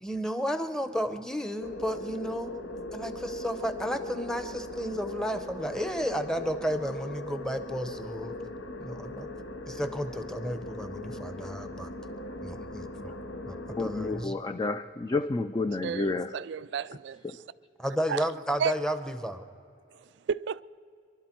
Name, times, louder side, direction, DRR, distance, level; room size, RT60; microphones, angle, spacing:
voice 1, 0.0-2.5 2.9-8.4 8.8-9.3 9.7-11.9 12.4-13.1 13.4-14.4 17.8-19.4, equal, 5° left, 0.8 m, -32 dB
sound 1, 1.6-14.3, left 2 dB, 80° left, 1.0 m, -39 dB
voice 2, 13.8-16.3 17.2-17.4, left 3 dB, 20° left, 0.4 m, -30 dB
voice 3, 15.8-17.2 18.1-18.2 18.6-18.7 20.3-20.6, right 7 dB, 65° right, 0.3 m, -31 dB
27.0 x 12.0 x 4.5 m
head